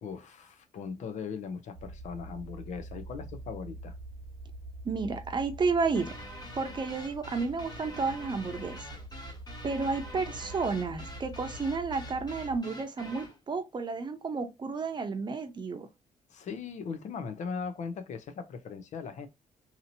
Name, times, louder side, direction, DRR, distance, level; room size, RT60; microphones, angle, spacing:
voice 1, 0.0-3.9 16.3-19.3, left 5 dB, 65° left, 0.6 m, -39 dB
sound 1, 1.7-12.6, right 2 dB, 65° right, 0.9 m, -45 dB
voice 2, 4.8-6.1 6.6-8.8 9.6-15.9, right 4 dB, 35° right, 0.7 m, -31 dB
sound 2, 5.9-13.4, left 1 dB, 30° left, 1.0 m, -46 dB
2.8 x 2.8 x 2.6 m
cardioid pair, 105°, 14 cm